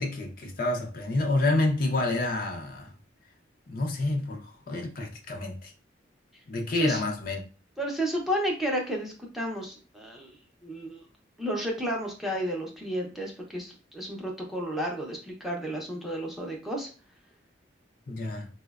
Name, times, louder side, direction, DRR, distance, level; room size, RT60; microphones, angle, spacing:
voice 1, 0.0-2.9 3.7-5.7 6.5-7.4 18.1-18.5, left 2 dB, 50° left, 0.5 m, -28 dB
voice 2, 7.8-10.4 10.6-11.0 11.4-16.9, equal, ahead, 0.6 m, -32 dB
4.1 x 2.0 x 2.3 m
head